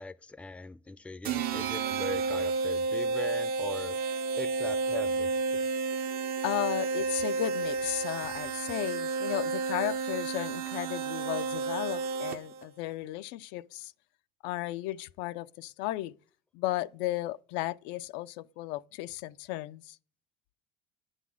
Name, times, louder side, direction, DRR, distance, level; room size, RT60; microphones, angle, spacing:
voice 1, 0.0-4.0 4.4-5.3, left 2 dB, 5° left, 0.4 m, -40 dB
sound 1, 1.3-12.6, right 4 dB, 55° right, 0.7 m, -31 dB
voice 2, 6.4-13.9 14.4-16.1 16.5-20.0, left 16 dB, 75° left, 0.4 m, -35 dB
9.2 x 4.0 x 7.3 m
cardioid pair, 120°, 18 cm